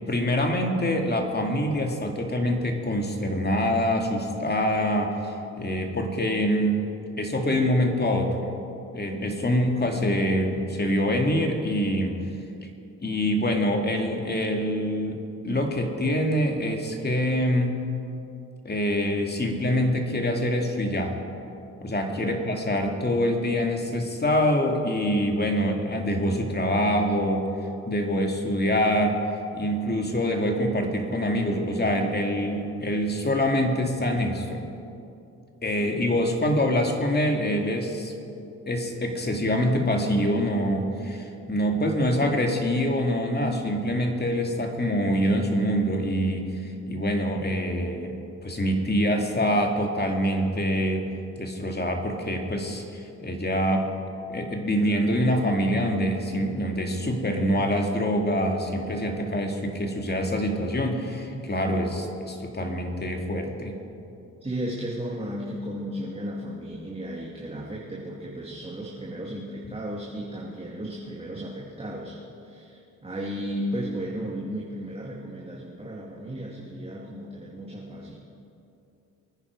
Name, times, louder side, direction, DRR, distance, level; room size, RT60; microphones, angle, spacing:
voice 1, 0.1-6.8 7.2-8.5 8.9-12.2 13.0-15.2 15.4-17.8 18.6-21.2 21.8-27.5 27.9-29.2 29.5-34.7 35.6-38.1 38.7-51.1 51.4-53.9 54.3-63.7, equal, 30° left, 2 dB, 2.4 m, -25 dB
voice 2, 64.4-72.2 72.4-78.2, equal, 15° right, -3 dB, 2.3 m, -34 dB
23.5 x 10.0 x 4.8 m, 2.6 s
supercardioid pair, 65°, 35 cm